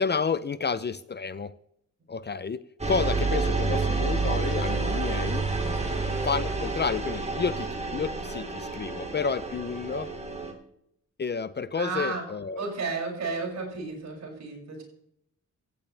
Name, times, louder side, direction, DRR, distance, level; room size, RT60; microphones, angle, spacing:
voice 1, 0.0-1.5 2.1-2.6 2.9-5.5 6.2-10.1 11.2-12.7, left 5 dB, 35° left, 15 dB, 0.5 m, -30 dB
sound 1, 2.8-10.5, right 3 dB, 20° right, 2.6 m, -29 dB
voice 2, 11.7-12.2 12.6-14.8, right 4 dB, 60° right, 0 dB, 6.6 m, -33 dB
17.5 x 14.0 x 3.3 m, 0.72 s
wide cardioid pair, 170°, 31 cm